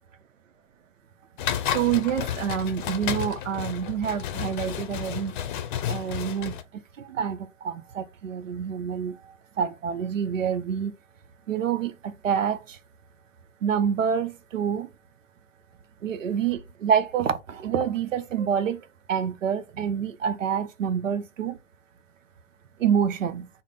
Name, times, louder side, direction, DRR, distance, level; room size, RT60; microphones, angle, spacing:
sound 1, 1.4-6.6, left 10 dB, 45° left, 0.6 m, -31 dB
voice 1, 1.7-5.4 5.9-10.9 11.5-12.8 13.6-14.9 16.0-21.6 22.8-23.5, right 8 dB, 85° right, 0.6 m, -27 dB
3.5 x 2.0 x 4.0 m
hypercardioid pair, 125°, 37 cm